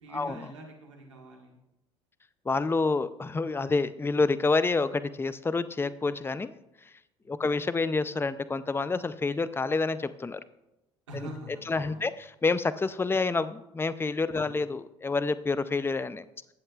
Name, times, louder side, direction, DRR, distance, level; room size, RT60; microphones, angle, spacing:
voice 1, 0.0-1.5 7.2-7.4 11.1-12.1 14.3-14.5, right 1 dB, 90° right, 0 dB, 1.7 m, -44 dB
voice 2, 2.5-6.5 7.3-10.4 11.7-12.1 12.4-16.2, left 3 dB, 15° left, 14 dB, 0.5 m, -28 dB
19.5 x 7.6 x 2.4 m, 0.92 s
hypercardioid pair, 60°, 15 cm